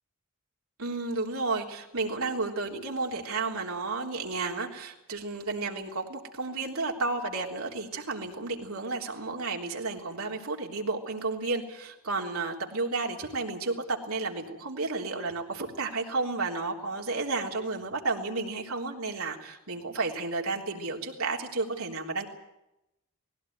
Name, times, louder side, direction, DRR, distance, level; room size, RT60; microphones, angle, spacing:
voice 1, 0.8-22.3, right 3 dB, 75° right, 1 dB, 3.5 m, -32 dB
19.5 x 16.5 x 9.5 m, 0.91 s
head